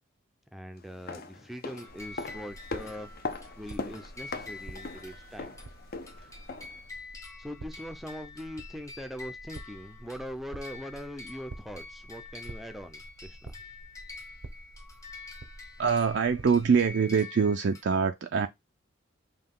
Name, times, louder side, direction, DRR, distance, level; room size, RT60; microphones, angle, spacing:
voice 1, 0.5-5.6 6.2-6.3 7.4-13.6, equal, ahead, 0.5 m, -42 dB
sound 1, 0.9-6.9 7.1-7.2, left 3 dB, 50° left, 0.6 m, -40 dB
sound 2, 1.8-17.8, left 3 dB, 15° left, 0.9 m, -47 dB
sound 3, 1.9-16.9, right 1 dB, 90° right, 0.8 m, -49 dB
voice 2, 15.8-18.5, right 6 dB, 60° right, 0.4 m, -24 dB
5.5 x 2.3 x 3.6 m
head